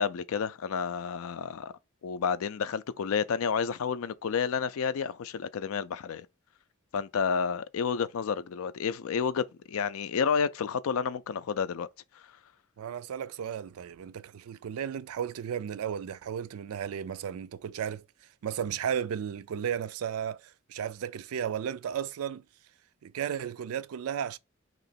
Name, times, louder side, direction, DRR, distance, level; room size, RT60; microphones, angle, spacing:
voice 1, 0.0-1.7 2.0-6.3 6.9-11.9 12.1-12.3, left 6 dB, 75° left, 0.4 m, -30 dB
voice 2, 12.8-18.1 18.4-22.4 23.0-24.4, right 8 dB, 80° right, 0.3 m, -34 dB
3.0 x 2.9 x 4.1 m
head